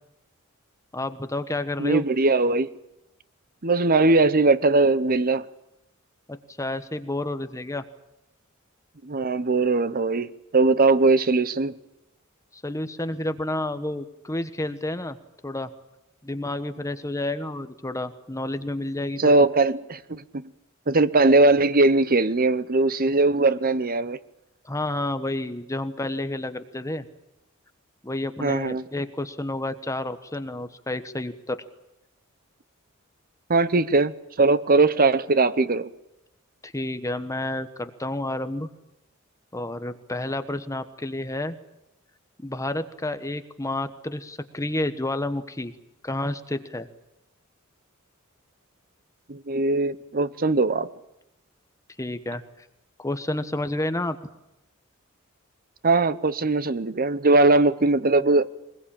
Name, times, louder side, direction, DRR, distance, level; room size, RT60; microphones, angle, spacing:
voice 1, 0.9-2.0 6.3-7.8 12.5-15.2 15.4-15.7 16.2-19.5 24.6-27.1 28.0-31.6 36.6-38.7 39.5-41.6 42.4-45.7 46.0-46.9 52.0-52.7 53.0-54.2, left 1 dB, 15° left, 1.2 m, -30 dB
voice 2, 1.8-2.7 3.6-5.5 9.0-11.8 19.2-20.5 20.9-24.2 28.4-28.8 33.5-35.9 49.3-50.9 55.8-58.5, right 3 dB, 45° right, 0.9 m, -20 dB
22.0 x 21.0 x 8.8 m
head